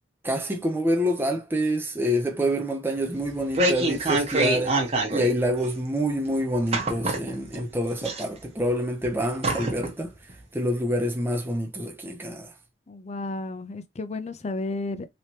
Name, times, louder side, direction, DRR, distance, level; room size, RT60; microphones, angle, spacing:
voice 1, 0.2-4.8 5.1-10.1 10.5-12.5, equal, 10° right, 0.6 m, -27 dB
sound 1, 3.2-5.3 5.6-5.7 6.7-7.6 8.0-8.7 9.0-9.1 9.4-9.9 10.3-10.4, right 2 dB, 35° right, 0.9 m, -25 dB
voice 2, 12.9-15.1, left 2 dB, 35° left, 0.4 m, -32 dB
3.2 x 3.0 x 2.8 m
head